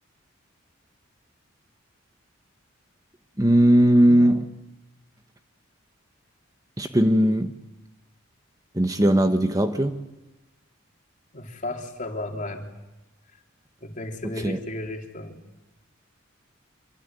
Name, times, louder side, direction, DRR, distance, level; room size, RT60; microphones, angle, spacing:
voice 1, 3.4-4.5 6.8-7.5 8.7-10.0 14.4-14.6, right 1 dB, 15° right, 7 dB, 1.2 m, -19 dB
voice 2, 11.3-12.7 13.8-15.4, left 1 dB, 40° left, 3 dB, 3.7 m, -34 dB
27.0 x 24.0 x 9.2 m, 1.0 s
head